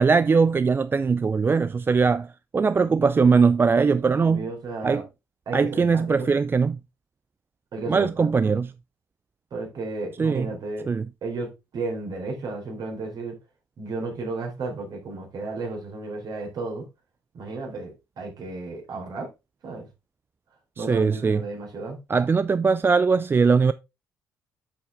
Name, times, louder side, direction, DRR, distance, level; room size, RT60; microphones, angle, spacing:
voice 1, 0.0-4.5 4.8-5.1 5.5-6.8 7.9-8.7 10.2-10.5 10.9-11.1 20.8-21.4 22.1-23.7, right 5 dB, 25° right, 0.4 m, -21 dB
voice 2, 4.1-5.0 5.5-6.3 7.7-8.5 9.5-10.9 11.2-13.4 13.8-16.8 17.3-19.3 19.6-19.9 20.8-22.0, right 3 dB, 50° right, 4.0 m, -33 dB
8.3 x 6.9 x 3.5 m
figure-of-eight pair, 45°, 9 cm